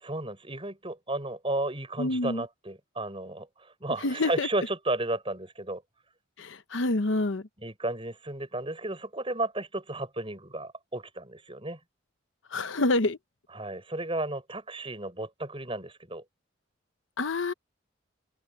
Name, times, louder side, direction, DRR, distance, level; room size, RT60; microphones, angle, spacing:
voice 1, 0.0-5.8 7.6-11.8 13.5-16.2, right 2 dB, 25° right, 6.8 m, -33 dB
voice 2, 2.0-2.4 4.0-4.5 6.4-7.4 12.5-13.2 17.2-17.5, left 2 dB, 70° left, 0.9 m, -27 dB
open air
head